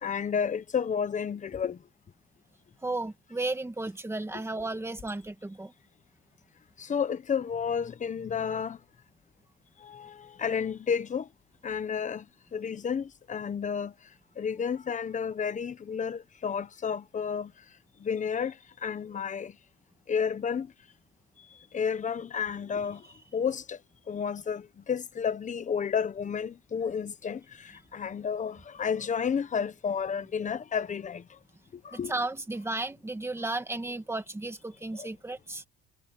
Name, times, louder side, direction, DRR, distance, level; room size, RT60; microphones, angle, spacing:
voice 1, 0.0-1.8 4.3-4.4 6.8-8.8 9.8-11.3 11.6-12.2 12.5-13.9 14.4-17.5 18.0-18.5 18.8-19.5 20.1-20.7 21.7-23.0 23.3-23.8 24.1-31.2 31.7-32.1 35.0-35.1, left 7 dB, 20° left, 0.9 m, -31 dB
voice 2, 2.8-5.7 31.9-35.6, right 2 dB, 5° right, 2.1 m, -34 dB
cardioid pair, 155°, 36 cm